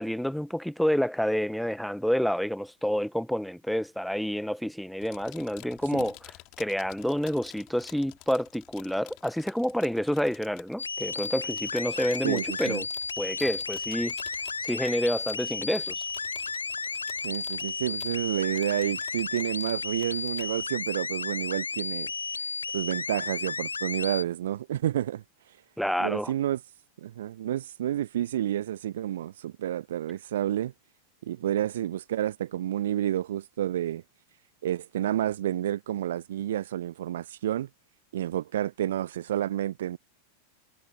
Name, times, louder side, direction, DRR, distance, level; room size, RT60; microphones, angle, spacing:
voice 1, 0.0-12.8 13.2-14.1 14.6-16.0 25.8-26.3, equal, ahead, 0.9 m, -29 dB
sound 1, 5.0-20.5, left 22 dB, 40° left, 3.0 m, -50 dB
sound 2, 10.8-24.2, left 4 dB, 75° left, 0.3 m, -33 dB
voice 2, 12.2-12.8 17.2-22.1 22.7-25.2 26.0-26.6 27.0-30.7 31.2-34.0 34.6-37.7 38.1-40.0, right 12 dB, 60° right, 0.3 m, -30 dB
figure-of-eight pair, 90°, 0 cm